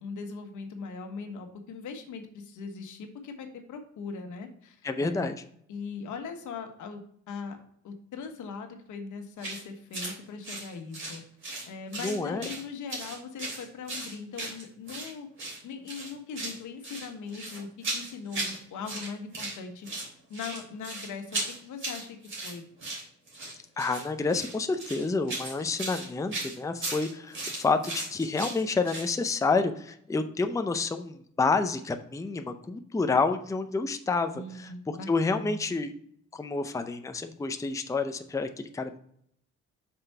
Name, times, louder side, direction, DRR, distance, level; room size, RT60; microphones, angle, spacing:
voice 1, 0.0-5.3 5.7-7.6 7.8-11.2 11.7-15.3 15.6-19.9 20.3-22.6 34.3-35.6, left 5 dB, 75° left, 5 dB, 1.3 m, -40 dB
voice 2, 4.8-5.4 12.0-12.5 23.8-35.9 36.3-39.0, left 4 dB, 10° left, 7 dB, 0.6 m, -29 dB
sound 1, 9.4-9.6 9.9-10.2 10.4-11.7 11.9-12.6 12.9-15.1 15.4-15.6 15.9-16.6 16.8-18.6 18.8-19.6 19.8-29.1, right 2 dB, 40° right, 3.1 m, -36 dB
6.0 x 4.5 x 5.4 m, 0.67 s
cardioid pair, 90°, 30 cm